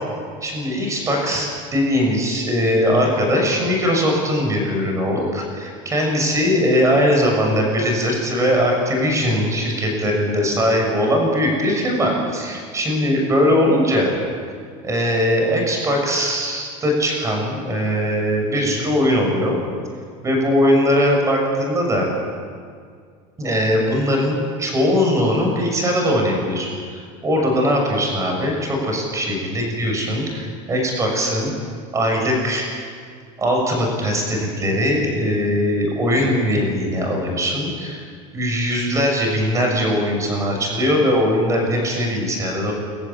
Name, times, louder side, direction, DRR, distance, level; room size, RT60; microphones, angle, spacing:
voice 1, 0.4-14.1 14.8-19.6 20.2-22.1 23.4-31.5 31.9-32.7 33.4-38.0 38.3-42.7, equal, 20° right, 1 dB, 6.6 m, -20 dB
24.0 x 14.5 x 9.9 m, 2.1 s
cardioid pair, 150°, 16 cm